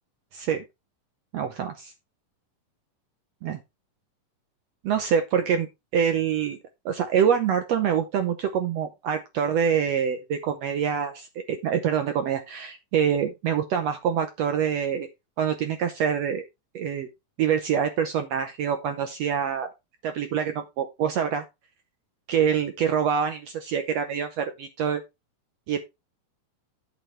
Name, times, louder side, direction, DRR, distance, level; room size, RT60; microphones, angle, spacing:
voice 1, 0.3-0.6 1.3-1.9 3.4-3.6 4.8-5.7 5.9-6.6 6.8-15.1 15.4-16.4 16.7-17.1 17.4-19.7 20.0-21.4 22.3-25.0 25.7-25.8, right 8 dB, 70° right, 8 dB, 1.6 m, -25 dB
8.9 x 8.3 x 3.2 m, 0.23 s
omnidirectional pair, 3.8 m